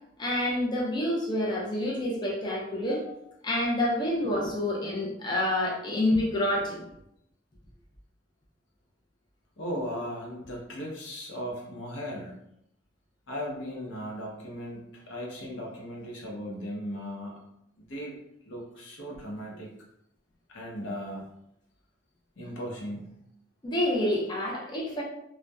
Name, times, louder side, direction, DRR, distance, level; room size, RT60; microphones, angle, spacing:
voice 1, 0.2-6.8 23.6-25.0, left 1 dB, 25° left, -4 dB, 0.5 m, -28 dB
voice 2, 9.6-12.4 13.3-17.4 17.9-18.2 18.5-19.7 20.5-21.3 22.4-23.2, equal, 90° left, -2 dB, 0.7 m, -37 dB
2.6 x 2.1 x 2.2 m, 0.77 s
head